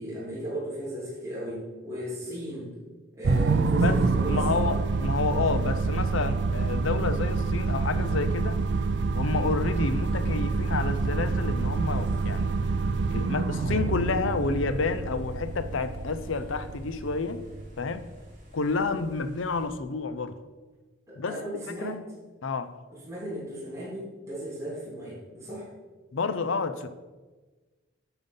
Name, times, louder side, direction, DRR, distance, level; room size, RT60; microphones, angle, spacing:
voice 1, 0.0-2.7 3.1-4.8 21.1-22.0 23.1-25.7, right 1 dB, 15° right, -8 dB, 2.9 m, -36 dB
sound 1, 3.2-17.7, right 4 dB, 65° right, 0.4 m, -27 dB
sound 2, 3.5-19.7, equal, 40° right, 2.4 m, -44 dB
voice 2, 3.8-8.6 9.1-12.6 13.1-17.4 17.8-18.1 18.5-20.4 21.2-21.4 21.8-22.0 22.4-22.7 26.1-26.9, left 4 dB, 85° left, 12 dB, 0.6 m, -29 dB
9.1 x 5.5 x 5.5 m, 1.3 s
head